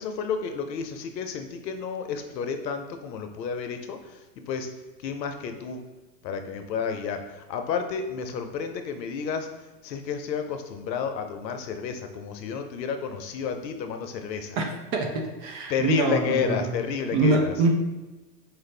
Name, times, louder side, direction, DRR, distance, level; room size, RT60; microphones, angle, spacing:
voice 1, 0.0-4.7 5.0-5.8 6.2-14.6 15.7-17.5, left 6 dB, 80° left, 7 dB, 0.7 m, -31 dB
voice 2, 14.9-16.6 17.1-17.7, right 3 dB, 55° right, 2 dB, 0.9 m, -24 dB
4.6 x 2.5 x 3.3 m, 1.1 s
hypercardioid pair, 100°, 50 cm